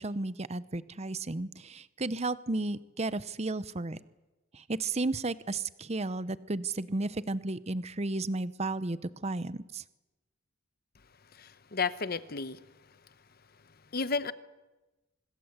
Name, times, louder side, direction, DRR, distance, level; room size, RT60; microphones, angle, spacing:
voice 1, 0.0-4.0 4.5-9.8, right 2 dB, 30° right, 16 dB, 0.8 m, -33 dB
voice 2, 11.3-12.6 13.9-14.3, left 4 dB, 45° left, 14 dB, 1.0 m, -32 dB
25.5 x 20.5 x 8.1 m, 1.1 s
head